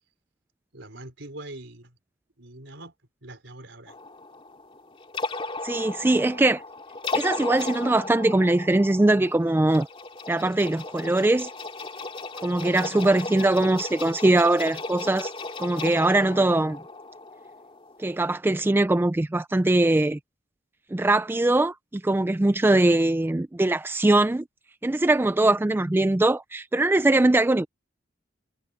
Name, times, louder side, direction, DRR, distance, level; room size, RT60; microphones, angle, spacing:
voice 1, 0.7-2.0 2.4-2.9 3.2-4.0, right 2 dB, 70° right, 5.3 m, -42 dB
sound 1, 3.9-18.3, left 3 dB, 30° left, 2.6 m, -36 dB
voice 2, 5.6-6.6 7.1-9.9 10.3-11.5 12.4-15.3 15.6-16.8 18.0-20.2 20.9-24.4 24.8-27.7, right 2 dB, 10° right, 0.3 m, -21 dB
head